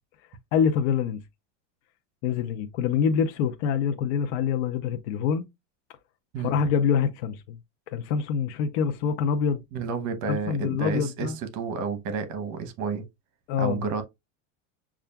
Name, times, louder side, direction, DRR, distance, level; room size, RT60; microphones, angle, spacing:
voice 1, 0.5-1.2 2.2-5.5 6.4-7.6 7.9-9.6 10.3-11.4 13.5-13.8, left 7 dB, 65° left, 0.6 m, -25 dB
voice 2, 9.7-13.0 13.6-14.0, right 5 dB, 50° right, 0.9 m, -30 dB
6.6 x 2.4 x 2.2 m
supercardioid pair, 125°, 37 cm